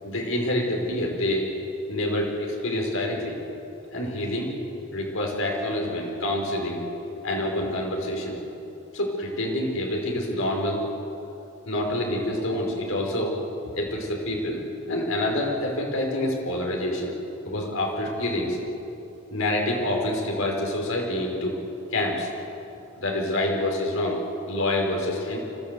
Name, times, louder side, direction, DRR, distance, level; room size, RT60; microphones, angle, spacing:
voice 1, 0.0-1.5 1.9-3.4 3.9-4.5 4.9-6.8 7.2-8.4 8.9-10.8 11.6-13.4 13.7-17.1 17.4-18.6 19.3-21.6 21.9-22.3 22.9-25.4, left 1 dB, 80° left, 0 dB, 5.0 m, -27 dB
25.0 x 16.0 x 8.2 m, 2.8 s
head